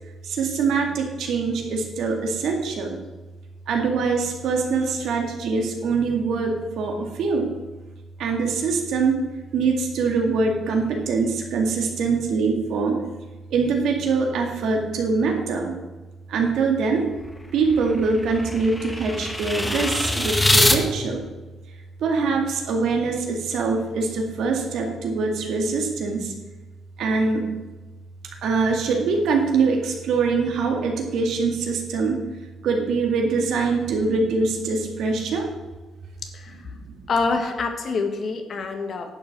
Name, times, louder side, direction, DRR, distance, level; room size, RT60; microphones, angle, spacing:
voice 1, 0.2-3.0 3.7-7.5 8.2-9.2 9.5-13.0 13.5-15.7 16.3-17.1 17.5-21.2 22.0-26.3 27.0-27.4 28.4-32.2 32.6-35.5, right 4 dB, 75° right, 2 dB, 2.2 m, -23 dB
sound 1, 17.2-20.8, left 1 dB, 10° left, 1.2 m, -24 dB
voice 2, 37.1-39.2, left 4 dB, 55° left, 5 dB, 1.7 m, -26 dB
11.0 x 7.2 x 6.1 m, 1.2 s
cardioid pair, 90°, 0 cm